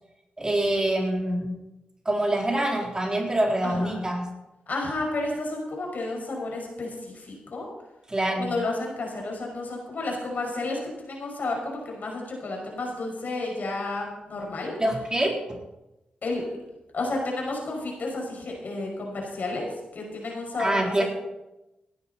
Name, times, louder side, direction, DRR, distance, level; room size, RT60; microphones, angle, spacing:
voice 1, 0.4-1.6 2.1-4.2 8.1-8.5 14.8-15.6 20.6-21.0, right 1 dB, 25° right, 0 dB, 3.6 m, -25 dB
voice 2, 3.6-4.0 4.7-7.7 8.4-14.8 16.2-16.5 16.9-19.7 19.9-21.0, left 2 dB, 65° left, 0 dB, 5.8 m, -31 dB
17.5 x 11.0 x 4.2 m, 0.95 s
cardioid pair, 55°, 3 cm